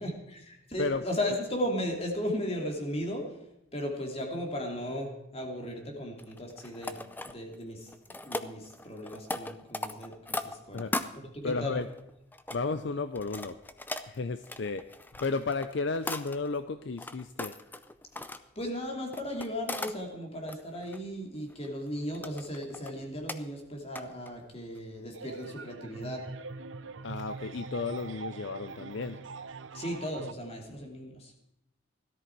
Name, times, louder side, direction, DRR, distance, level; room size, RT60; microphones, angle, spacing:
voice 1, 0.0-3.4 3.7-7.0 7.3-7.9 8.2-10.9 11.1-11.8 18.2-18.3 18.5-26.2 29.7-31.3, equal, 30° left, 1 dB, 2.8 m, -36 dB
sound 1, 6.2-7.6 7.9-11.1 11.8-12.6 13.1-16.6 17.0-18.4 19.1-19.9 20.3-21.0 21.5-21.9 22.1-22.9 23.3-23.4 23.9-24.4 24.7-24.8, left 2 dB, 10° left, 0.5 m, -38 dB
voice 2, 11.4-11.9 12.5-13.6 14.1-14.8 15.2-17.5 27.0-29.2, left 4 dB, 60° left, 11 dB, 0.5 m, -33 dB
sound 2, 25.1-30.3, right 4 dB, 70° right, 0.7 m, -43 dB
17.0 x 13.0 x 4.6 m, 0.85 s
head